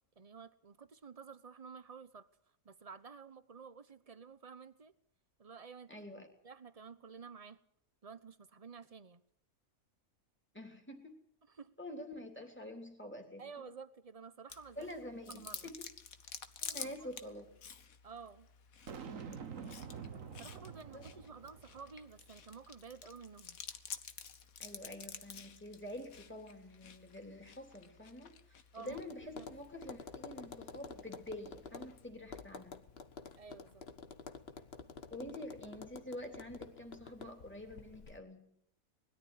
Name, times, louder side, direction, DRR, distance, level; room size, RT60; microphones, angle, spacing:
voice 1, 0.2-2.3 2.6-4.9 5.4-6.0 6.4-7.6 8.0-9.2 11.6-11.7 13.4-14.9 15.2-15.7 16.8-17.2 18.0-18.5 20.4-23.6 28.7-29.0 29.3-29.5 33.4-33.8, right 5 dB, 30° right, 14 dB, 1.0 m, -52 dB
voice 2, 5.9-6.3 10.5-11.2 11.8-13.5 14.7-15.8 16.6-17.5 20.9-21.1 24.6-32.8 35.1-38.5, left 1 dB, 10° left, 3 dB, 3.3 m, -47 dB
Chewing mastication, 14.5-32.1, left 7 dB, 75° left, 1.6 m, -51 dB
Boom, 18.9-22.2, right 6 dB, 65° right, 1.6 m, -47 dB
Tap, 28.9-38.2, left 5 dB, 45° left, 1.5 m, -50 dB
20.5 x 13.0 x 9.8 m, 0.67 s
omnidirectional pair, 1.5 m